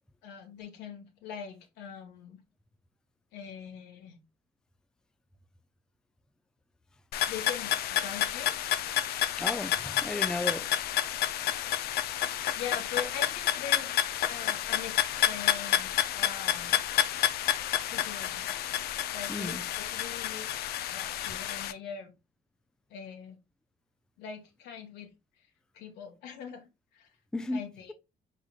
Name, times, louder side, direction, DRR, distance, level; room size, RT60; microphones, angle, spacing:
voice 1, 0.2-2.4 3.3-4.2 7.3-7.7 8.0-8.5 12.5-13.9 14.2-16.8 17.9-18.6 19.1-20.5 20.9-22.1 22.9-23.3 24.2-25.1 25.7-26.7 26.9-27.1 27.5-27.9, left 7 dB, 85° left, 1.3 m, -42 dB
sound 1, 7.1-21.7, left 12 dB, 70° left, 0.5 m, -30 dB
voice 2, 9.4-10.7 19.3-19.6 27.3-27.6, left 2 dB, 5° left, 0.4 m, -34 dB
4.8 x 4.0 x 2.3 m
cardioid pair, 110°, 17 cm